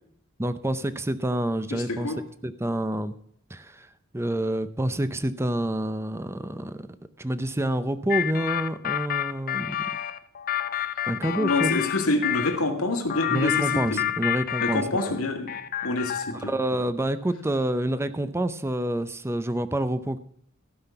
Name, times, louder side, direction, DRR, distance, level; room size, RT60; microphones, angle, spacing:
voice 1, 0.4-2.1 2.4-3.1 3.5-3.9 4.1-6.8 7.2-9.8 11.1-11.8 13.3-15.1 16.4-20.2, right 1 dB, 10° right, 12 dB, 0.6 m, -28 dB
voice 2, 1.7-2.2 11.2-14.0 14.6-16.5, left 2 dB, 85° left, 3 dB, 2.1 m, -27 dB
sound 1, 8.1-12.6 13.1-15.2 15.5-16.4, left 12 dB, 45° left, 0.5 m, -29 dB
15.5 x 5.8 x 5.7 m, 0.65 s
head